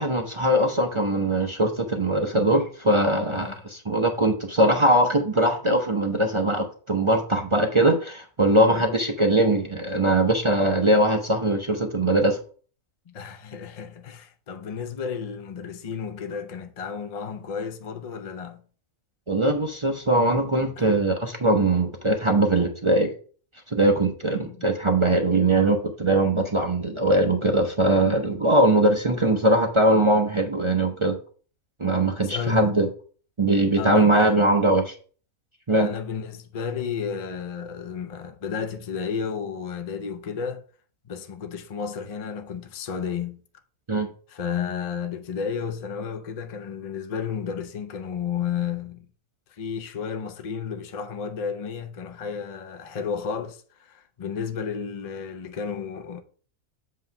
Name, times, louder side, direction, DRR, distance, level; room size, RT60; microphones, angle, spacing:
voice 1, 0.0-12.4 19.3-23.1 23.7-31.2 31.8-32.9 33.4-34.9 35.7-35.9 43.9-44.1, right 1 dB, 35° right, 0.5 m, -21 dB
voice 2, 8.5-8.9 13.1-18.6 20.8-20.9 24.3-24.7 32.2-32.8 33.8-34.2 35.7-40.6 41.1-43.4 44.3-49.1 49.5-56.2, left 6 dB, 70° left, 0.3 m, -32 dB
7.6 x 3.2 x 5.8 m
omnidirectional pair, 1.6 m